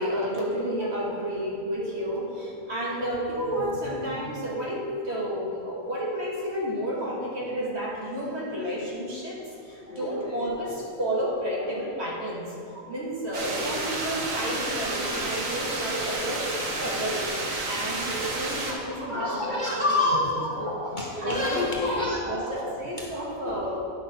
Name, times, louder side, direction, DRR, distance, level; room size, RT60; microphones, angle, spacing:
voice 1, 0.0-12.5 12.9-20.3 20.6-20.8 21.2-22.0 22.3-23.8, equal, 50° right, -5 dB, 1.8 m, -31 dB
voice 2, 9.8-10.4 12.7-12.8 13.3-13.5 15.0-15.2 15.5-15.6 18.8-23.1 23.4-23.7, left 2 dB, 40° left, -3 dB, 1.0 m, -29 dB
sound 1, 13.3-18.7, right 2 dB, 70° right, 1.5 m, -31 dB
10.0 x 5.8 x 4.1 m, 2.5 s
omnidirectional pair, 1.4 m